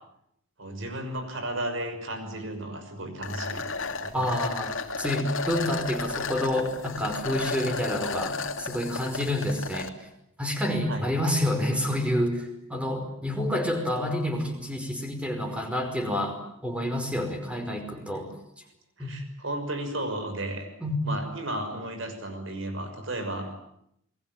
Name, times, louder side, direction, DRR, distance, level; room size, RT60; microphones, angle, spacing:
voice 1, 0.6-3.7 4.0-4.3 10.9-11.0 19.0-20.7 21.0-23.5, right 1 dB, 60° right, 7 dB, 6.2 m, -34 dB
sound 1, 3.2-9.9, left 4 dB, 65° left, 2.7 m, -33 dB
voice 2, 4.1-9.9 10.4-18.3 19.0-19.1 20.8-21.0, left 1 dB, 5° right, 5 dB, 5.2 m, -28 dB
29.0 x 21.5 x 9.4 m, 0.76 s
head